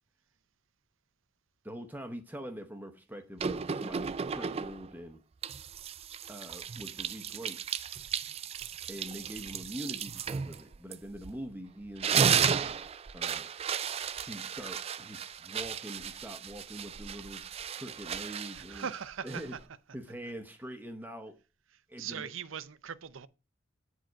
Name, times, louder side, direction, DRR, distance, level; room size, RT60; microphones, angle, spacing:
voice 1, 1.6-5.2 6.3-7.6 8.9-12.4 13.1-13.5 14.3-17.4 17.7-18.9 19.2-19.6 19.9-21.4 21.9-22.3, equal, 10° right, 0.7 m, -44 dB
sound 1, 3.4-4.9 5.4-11.5 11.8-19.7, right 7 dB, 30° right, 0.3 m, -34 dB
voice 2, 18.5-19.6 22.0-23.3, right 7 dB, 75° right, 0.6 m, -40 dB
8.9 x 5.0 x 4.6 m
head